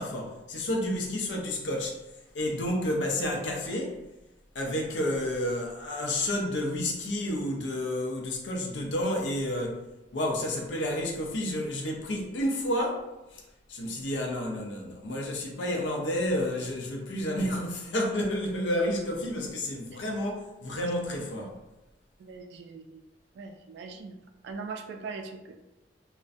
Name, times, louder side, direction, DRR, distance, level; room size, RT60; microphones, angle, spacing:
voice 1, 0.0-2.0 2.3-4.0 4.6-9.8 10.1-13.1 13.3-13.4 13.7-21.6, left 1 dB, 70° left, 0.5 m, -30 dB
voice 2, 22.2-23.0 23.4-24.1 24.4-25.5, right 4 dB, 65° right, 0.3 m, -41 dB
2.5 x 2.1 x 2.4 m
head